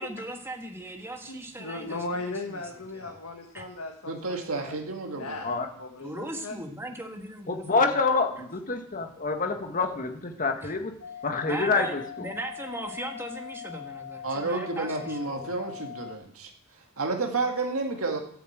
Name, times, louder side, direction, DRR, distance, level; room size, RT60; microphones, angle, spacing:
voice 1, 0.0-3.2 3.5-3.6 6.0-8.0 10.6-10.7 11.4-15.5, right 1 dB, 10° right, 3 dB, 1.7 m, -39 dB
voice 2, 1.3-4.8 5.1-6.5, left 2 dB, 70° left, 2 dB, 1.6 m, -37 dB
voice 3, 4.1-5.3 14.2-16.5 17.0-18.2, right 3 dB, 65° right, 3 dB, 2.2 m, -30 dB
voice 4, 7.5-10.9 11.2-12.3, left 4 dB, 40° left, 4 dB, 1.6 m, -27 dB
sound 1, 11.0-16.2, left 9 dB, 85° left, 2.5 m, -41 dB
12.5 x 8.6 x 8.0 m, 0.66 s
head